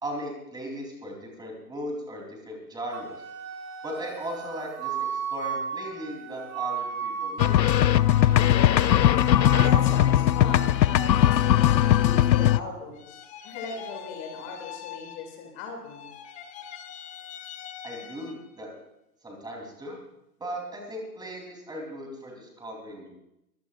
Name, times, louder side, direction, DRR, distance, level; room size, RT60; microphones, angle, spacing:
voice 1, 0.0-3.2 3.8-5.0 5.3-7.5 17.8-18.7 19.2-20.0 20.4-23.1, equal, 10° right, 0 dB, 3.7 m, -37 dB
Wind instrument woodwind instrument, 2.9-9.7, right 7 dB, 55° right, 5.1 m, -35 dB
sound 1, 7.4-12.6, left 12 dB, 85° left, 0.6 m, -19 dB
voice 2, 9.6-16.1, left 3 dB, 35° left, 2 dB, 2.9 m, -38 dB
sound 2, 12.9-15.6 15.8-18.6, left 9 dB, 15° left, 0.8 m, -43 dB
23.0 x 15.0 x 2.6 m, 0.83 s
hypercardioid pair, 120°, 50 cm